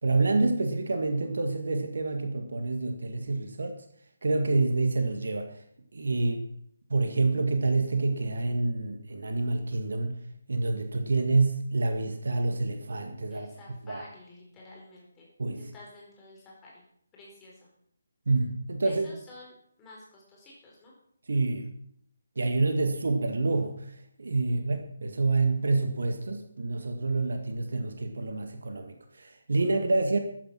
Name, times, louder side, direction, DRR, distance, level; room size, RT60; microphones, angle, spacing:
voice 1, 0.0-3.8 4.2-5.6 5.9-6.4 6.9-10.2 10.5-13.5 13.8-14.0 15.4-15.6 18.2-19.1 21.3-21.7 22.3-30.2, right 3 dB, 55° right, 6 dB, 1.8 m, -27 dB
voice 2, 13.3-15.3 15.6-16.8 17.1-17.7 18.8-20.9 22.9-23.0 24.5-24.6, left 2 dB, 15° left, -4 dB, 4.6 m, -50 dB
14.0 x 9.6 x 5.9 m, 0.68 s
figure-of-eight pair, 145°, 0 cm